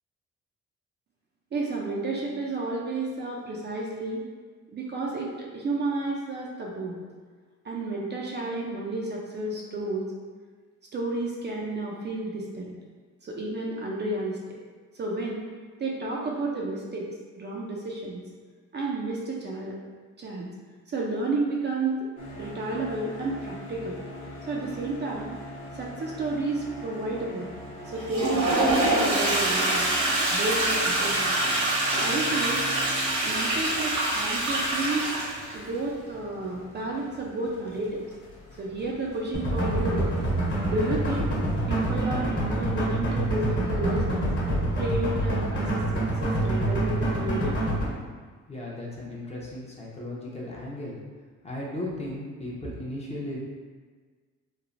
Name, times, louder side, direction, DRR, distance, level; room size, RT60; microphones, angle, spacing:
voice 1, 1.5-4.2 4.7-7.0 7.6-10.1 10.9-12.7 13.2-14.4 14.9-15.4 15.8-17.1 17.4-18.2 18.7-19.8 20.2-20.5 20.9-22.1 22.4-24.0 24.5-25.4 25.7-27.5 27.8-29.9 30.3-31.3 31.9-32.6 33.2-35.1 35.5-38.0 38.6-40.1 40.6-41.3 41.7-44.3 44.8-47.6, right 2 dB, 35° right, -3 dB, 0.4 m, -31 dB
sound 1, 22.2-42.0, equal, 85° left, 1.0 m, -43 dB
Toilet flush, 27.9-35.6, right 1 dB, 65° right, 1.0 m, -25 dB
sound 2, 39.3-47.8, right 1 dB, 40° left, 1.0 m, -26 dB
voice 2, 48.5-51.0 51.4-53.4, left 1 dB, 20° left, -4 dB, 0.6 m, -36 dB
3.1 x 2.0 x 2.5 m, 1.5 s
cardioid pair, 90°, 30 cm